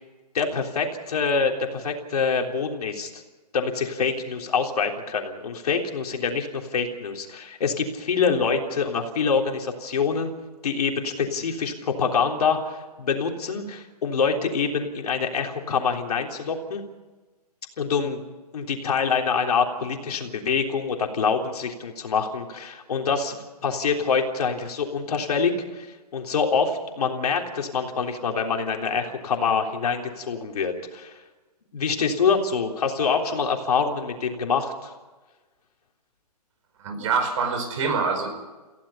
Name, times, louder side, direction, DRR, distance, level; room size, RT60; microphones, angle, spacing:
voice 1, 0.3-3.2 3.5-10.3 10.6-16.8 17.8-18.2 18.5-31.1 31.7-34.9, left 5 dB, 65° left, 2 dB, 3.5 m, -25 dB
voice 2, 36.8-38.4, right 5 dB, 50° right, 6 dB, 5.0 m, -25 dB
29.0 x 16.0 x 5.6 m, 1.2 s
hypercardioid pair, 140°, 21 cm